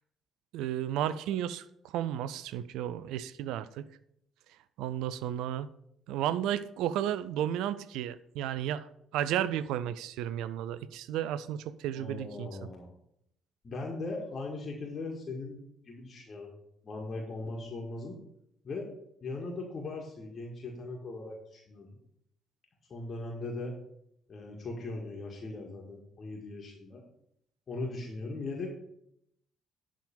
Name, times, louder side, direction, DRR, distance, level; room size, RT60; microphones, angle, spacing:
voice 1, 0.5-3.8 4.8-5.7 6.1-12.5, right 11 dB, 65° right, 0.4 m, -33 dB
voice 2, 11.9-12.9 13.6-15.6 15.8-18.2 18.6-18.9 19.2-22.0 22.9-23.8 24.3-27.0 27.7-28.7, left 2 dB, 40° left, 1.8 m, -39 dB
11.5 x 3.8 x 7.1 m
figure-of-eight pair, 50°, 0 cm